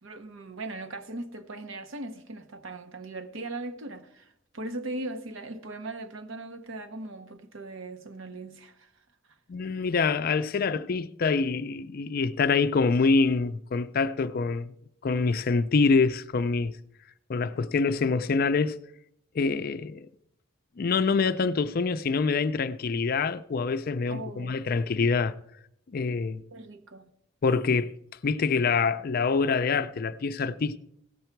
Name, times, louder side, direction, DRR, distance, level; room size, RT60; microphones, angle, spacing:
voice 1, 0.0-4.3 4.5-8.9 24.1-24.7 26.5-27.1, right 2 dB, 75° right, 0.9 m, -39 dB
voice 2, 9.5-14.7 15.0-16.7 17.3-18.8 19.3-20.1 20.8-25.3 25.9-26.4 27.4-27.9 28.2-30.8, left 4 dB, 45° left, 0.4 m, -25 dB
16.5 x 6.8 x 4.5 m
head